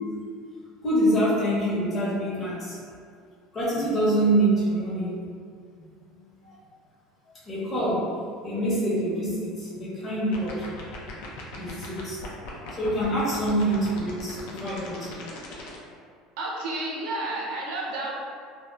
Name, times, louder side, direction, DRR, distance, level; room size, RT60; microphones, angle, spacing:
voice 1, 0.8-2.8 3.5-5.2 5.8-5.9 6.4-6.5 7.5-8.2 8.4-10.7 11.6-15.1, right 1 dB, 30° left, -8 dB, 0.8 m, -26 dB
sound 1, 10.2-15.8, left 3 dB, 85° left, 0.4 m, -39 dB
voice 2, 16.4-18.1, right 2 dB, 75° right, -4 dB, 0.6 m, -31 dB
2.7 x 2.0 x 2.3 m, 2.2 s
supercardioid pair, 120°, 0 cm